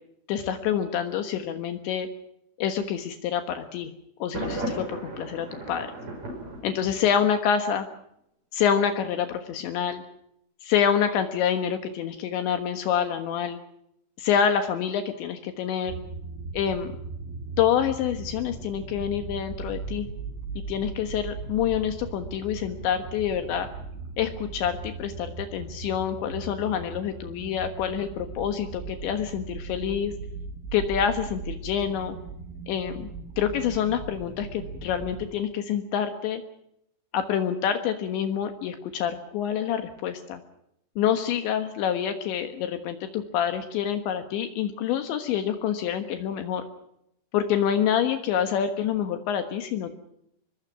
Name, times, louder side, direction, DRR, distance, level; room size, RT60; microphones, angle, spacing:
voice 1, 0.3-2.1 2.6-3.9 4.2-5.9 6.6-7.9 8.5-10.0 10.6-13.6 14.2-16.0 16.5-16.9 17.6-20.1 20.7-23.7 24.2-30.1 30.7-32.2 32.7-33.1 33.4-36.4 37.1-40.4 41.0-46.6 47.3-49.9, left 8 dB, 75° left, 7 dB, 3.6 m, -27 dB
Thunder, 4.3-7.3, right 1 dB, 35° right, 7.5 m, -35 dB
sound 1, 15.9-35.3, right 4 dB, 85° right, 5.2 m, -38 dB
26.0 x 22.0 x 5.9 m, 0.76 s
omnidirectional pair, 5.4 m